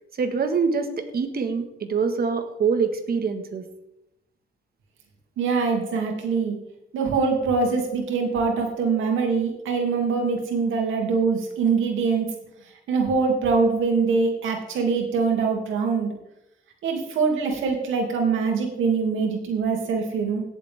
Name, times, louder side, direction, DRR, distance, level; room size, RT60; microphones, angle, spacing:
voice 1, 0.2-3.7, right 5 dB, 50° right, 7 dB, 1.8 m, -25 dB
voice 2, 5.4-6.6 6.9-12.3 12.9-16.1 16.8-20.4, right 5 dB, 80° right, 1 dB, 2.8 m, -23 dB
17.5 x 7.4 x 3.7 m, 0.83 s
cardioid pair, 90°, 20 cm